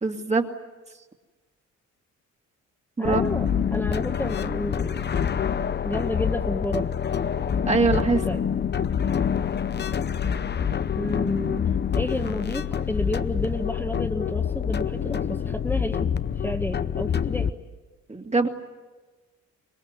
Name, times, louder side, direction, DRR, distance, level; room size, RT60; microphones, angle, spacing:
voice 1, 0.0-0.5 3.0-3.2 7.7-8.2 18.1-18.5, right 3 dB, 20° right, 3 dB, 2.3 m, -22 dB
sound 1, 3.0-17.5, left 7 dB, 35° left, 0.8 m, -26 dB
voice 2, 3.0-5.1 5.8-6.8 8.3-8.4 11.0-11.6 11.9-16.0 16.4-17.5, left 1 dB, 5° left, 2 dB, 1.6 m, -31 dB
25.5 x 21.0 x 9.6 m, 1.3 s
cardioid pair, 90°, 30 cm